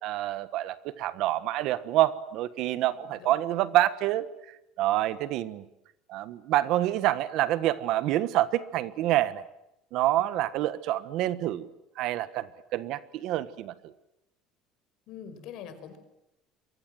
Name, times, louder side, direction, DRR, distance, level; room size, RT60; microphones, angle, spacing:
voice 1, 0.0-4.3 4.8-5.6 6.1-9.4 9.9-11.7 12.0-13.7, right 14 dB, 55° right, 14 dB, 1.4 m, -27 dB
voice 2, 2.7-3.4 15.1-16.0, left 8 dB, 55° left, 10 dB, 5.5 m, -44 dB
29.0 x 24.0 x 7.8 m, 0.86 s
cardioid pair, 170°, 0 cm